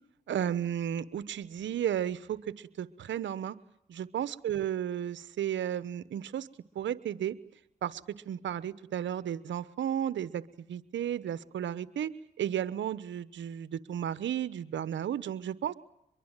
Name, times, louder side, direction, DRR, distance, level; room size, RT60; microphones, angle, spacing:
voice 1, 0.3-3.6 3.9-6.5 6.7-7.4 7.8-12.1 12.4-15.7, right 10 dB, 80° right, 15 dB, 1.2 m, -33 dB
24.0 x 23.0 x 9.0 m, 0.80 s
cardioid pair, 65°, 19 cm